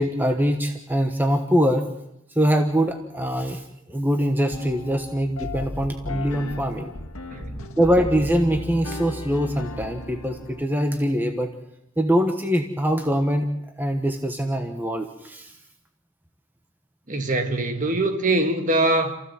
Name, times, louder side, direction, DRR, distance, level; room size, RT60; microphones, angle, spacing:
voice 1, 0.0-1.9 2.3-6.9 7.8-11.5 12.0-13.5 13.8-15.5, equal, 10° right, 1.2 m, -23 dB
sound 1, 4.5-10.6, left 2 dB, 75° left, 1.8 m, -35 dB
voice 2, 7.3-7.8 17.1-19.2, right 2 dB, 35° right, 1.7 m, -23 dB
27.5 x 15.5 x 7.6 m
head